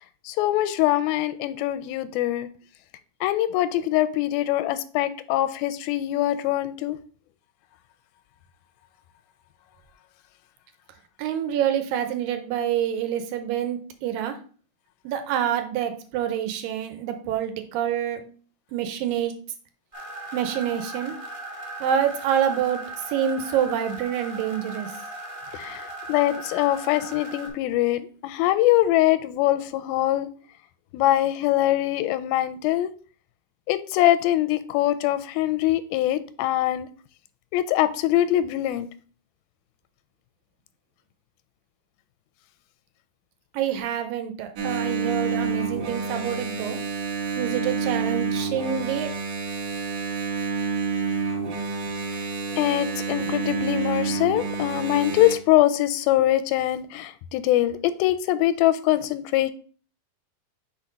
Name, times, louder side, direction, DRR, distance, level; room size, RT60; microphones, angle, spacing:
voice 1, 0.3-2.5 3.2-7.0 25.5-30.3 30.9-32.9 33.7-36.9 37.5-38.9 52.1-52.2 52.6-59.5, left 14 dB, 85° left, 13 dB, 2.4 m, -23 dB
voice 2, 11.2-14.4 15.0-18.2 18.7-19.3 20.3-21.2 21.8-22.8 23.1-24.9 43.5-46.8 47.4-49.2, right 9 dB, 80° right, 8 dB, 2.3 m, -27 dB
sound 1, 19.9-27.5, right 1 dB, 15° right, 1.2 m, -38 dB
Engine, 44.6-55.4, right 4 dB, 55° right, 1.5 m, -28 dB
5.9 x 4.3 x 5.1 m, 0.41 s
omnidirectional pair, 4.2 m